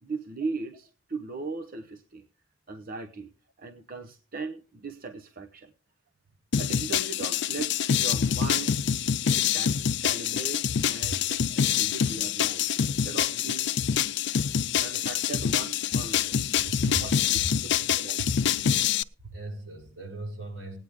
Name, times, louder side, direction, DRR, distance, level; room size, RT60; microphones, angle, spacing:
voice 1, 0.0-2.2 2.7-3.3 3.6-5.7 6.6-8.9 9.2-11.2 11.5-13.7 14.8-16.4 17.0-17.1 17.9-18.2, right 4 dB, 45° right, 0.9 m, -38 dB
sound 1, 6.5-19.0, left 8 dB, 60° left, 0.5 m, -26 dB
voice 2, 16.7-17.9 19.2-20.8, right 1 dB, 85° right, 6.2 m, -38 dB
19.0 x 9.1 x 3.6 m
head